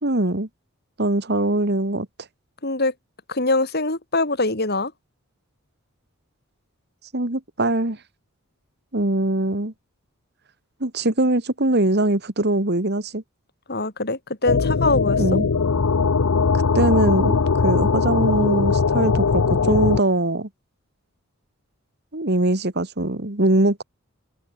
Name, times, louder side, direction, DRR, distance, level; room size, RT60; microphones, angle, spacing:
voice 1, 0.0-0.5 1.0-2.1 7.1-8.0 8.9-9.7 10.8-13.2 15.2-15.5 16.7-20.5 22.1-23.8, right 1 dB, 50° right, 2.2 m, -22 dB
voice 2, 2.6-2.9 3.3-4.9 13.7-15.4, left 2 dB, 50° left, 3.7 m, -23 dB
sound 1, 14.5-20.0, left 4 dB, 90° left, 0.7 m, -20 dB
open air
head